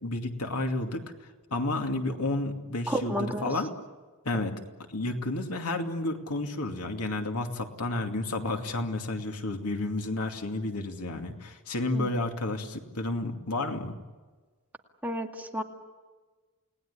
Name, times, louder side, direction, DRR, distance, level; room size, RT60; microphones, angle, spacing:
voice 1, 0.0-3.7 4.2-4.5 4.9-14.0, left 2 dB, 90° left, 4 dB, 2.5 m, -31 dB
voice 2, 2.9-3.5 11.9-12.2 15.0-15.6, equal, 5° right, 2 dB, 2.1 m, -32 dB
29.0 x 19.0 x 9.9 m, 1.3 s
head